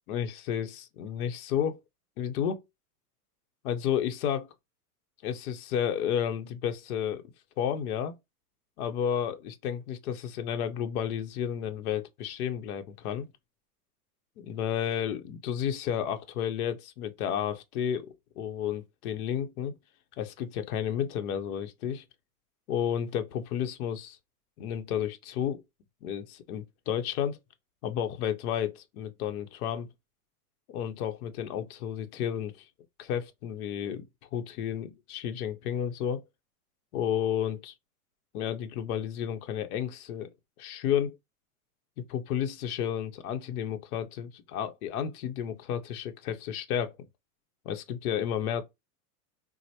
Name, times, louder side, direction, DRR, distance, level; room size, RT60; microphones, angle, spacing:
voice 1, 0.1-1.8 2.2-2.6 3.6-4.5 5.2-7.2 7.6-8.1 8.8-13.3 14.4-19.8 20.2-22.0 22.7-24.2 24.6-25.6 26.0-27.4 27.8-29.9 30.7-32.7 33.0-34.1 34.3-36.2 36.9-37.7 38.3-40.3 40.6-41.2 42.0-47.0 47.6-48.6, left 9 dB, 65° left, 0.8 m, -32 dB
4.3 x 2.0 x 2.8 m
hypercardioid pair, 120°, 46 cm